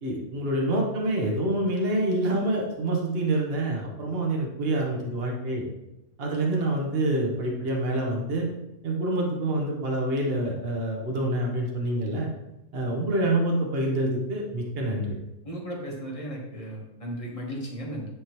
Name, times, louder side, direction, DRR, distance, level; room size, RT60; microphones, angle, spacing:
voice 1, 0.0-5.6 6.2-8.5 8.8-12.3 12.7-15.2, right 1 dB, 45° right, -1 dB, 1.3 m, -27 dB
voice 2, 15.4-18.0, equal, 25° left, -3 dB, 1.4 m, -35 dB
9.9 x 3.6 x 3.1 m, 0.92 s
omnidirectional pair, 1.5 m